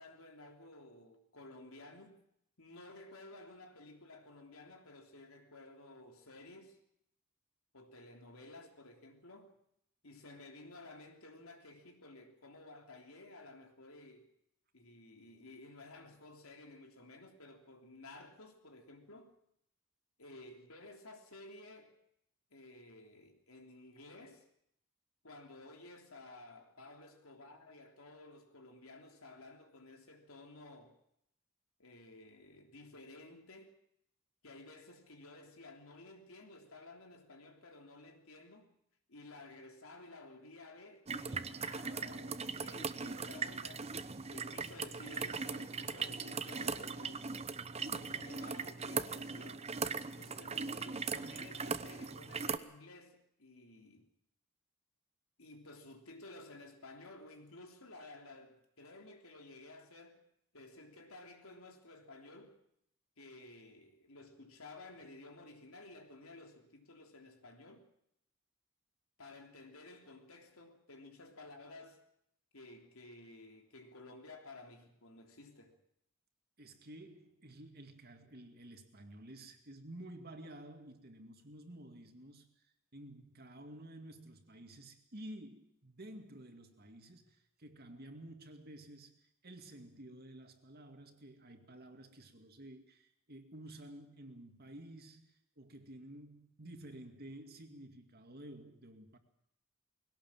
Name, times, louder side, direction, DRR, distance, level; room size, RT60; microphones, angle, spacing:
voice 1, 0.0-2.2 2.6-6.8 7.7-9.5 10.0-14.3 14.7-19.4 20.2-22.0 22.5-24.5 25.2-31.0 31.8-33.7 34.4-38.7 39.1-44.0 44.3-47.3 47.8-49.7 50.2-54.1 55.4-60.2 60.5-62.6 63.2-67.9 69.2-72.0 72.5-75.8, left 2 dB, 90° left, 3.4 m, -54 dB
sound 1, 41.1-52.6, right 5 dB, 30° right, 0.8 m, -39 dB
voice 2, 76.6-82.5 82.9-99.2, right 1 dB, 50° right, 2.4 m, -52 dB
21.0 x 17.0 x 7.5 m
head